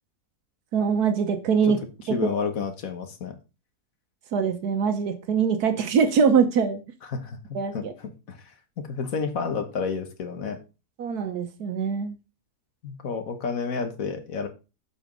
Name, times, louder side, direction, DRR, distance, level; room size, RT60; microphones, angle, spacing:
voice 1, 0.7-1.8 4.3-6.8 7.5-7.9 11.0-12.2, right 6 dB, 75° right, 8 dB, 1.4 m, -23 dB
voice 2, 2.1-3.4 7.1-7.4 7.7-10.6 12.8-14.5, left 5 dB, 60° left, 8 dB, 1.6 m, -30 dB
7.7 x 5.1 x 5.1 m, 0.30 s
omnidirectional pair, 1.7 m